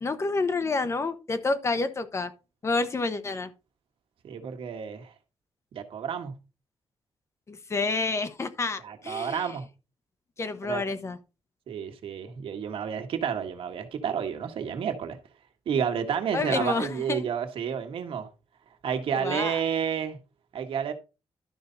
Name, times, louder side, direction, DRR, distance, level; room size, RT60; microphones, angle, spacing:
voice 1, 0.0-2.3 2.6-3.5 7.5-9.5 10.4-11.2 16.3-17.2 19.2-19.6, left 3 dB, 30° left, 1.0 m, -29 dB
voice 2, 4.2-5.1 5.7-6.3 8.8-9.6 10.6-10.8 11.7-15.2 15.6-18.3 18.8-20.2 20.5-20.9, right 7 dB, 75° right, 1.6 m, -30 dB
12.0 x 5.6 x 4.0 m
wide cardioid pair, 150°, 9 cm